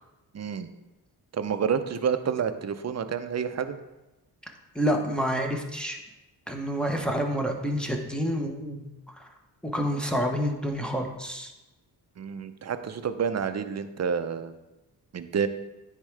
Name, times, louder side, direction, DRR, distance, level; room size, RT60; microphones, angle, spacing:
voice 1, 0.3-0.7 1.3-3.8 12.2-14.6 15.1-15.5, right 7 dB, 40° right, 10 dB, 0.5 m, -29 dB
voice 2, 4.7-6.0 6.5-8.9 9.2-9.3 9.6-11.5, equal, ahead, 1 dB, 0.9 m, -28 dB
9.8 x 3.7 x 3.3 m, 1.0 s
cardioid pair, 75°, 41 cm